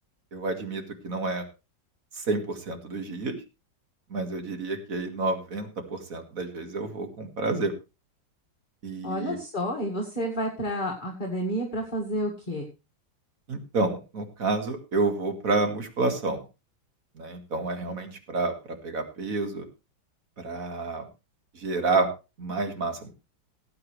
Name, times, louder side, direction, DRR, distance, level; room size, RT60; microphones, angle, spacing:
voice 1, 0.3-1.5 2.1-3.4 4.1-7.7 8.8-9.4 13.5-16.4 17.2-19.6 20.4-21.0 21.5-22.1 22.4-23.1, right 3 dB, 50° right, 6 dB, 2.3 m, -29 dB
voice 2, 9.0-12.7, equal, 25° left, -1 dB, 2.1 m, -30 dB
18.0 x 8.7 x 3.2 m, 0.28 s
omnidirectional pair, 2.0 m